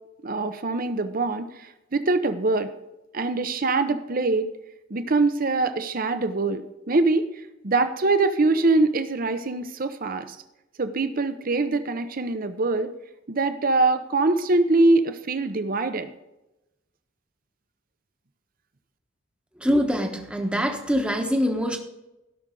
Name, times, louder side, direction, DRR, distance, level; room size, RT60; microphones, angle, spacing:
voice 1, 0.2-2.7 3.1-4.5 4.9-7.3 7.6-10.4 10.8-12.9 13.3-16.1, right 3 dB, 45° right, 10 dB, 0.8 m, -23 dB
voice 2, 19.6-21.8, equal, 5° right, 3 dB, 1.1 m, -24 dB
16.0 x 6.2 x 3.8 m, 0.94 s
head